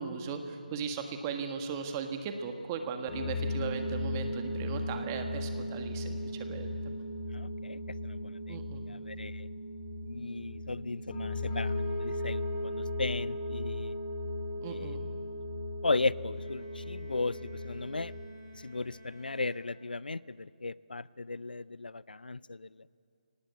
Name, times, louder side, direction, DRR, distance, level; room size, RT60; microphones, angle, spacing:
voice 1, 0.0-6.8 8.5-8.8 14.6-15.0, right 6 dB, 20° right, 6 dB, 1.6 m, -37 dB
sound 1, 3.1-18.2, left 1 dB, 30° left, 5.8 m, -36 dB
voice 2, 7.3-8.6 8.9-9.5 10.0-14.0 14.7-15.0 15.8-18.1 18.5-22.8, left 3 dB, 90° left, 21 dB, 0.5 m, -36 dB
Bowed string instrument, 16.3-20.3, left 2 dB, 50° left, 6.6 m, -57 dB
23.5 x 18.5 x 8.3 m, 2.5 s
figure-of-eight pair, 160°, 5 cm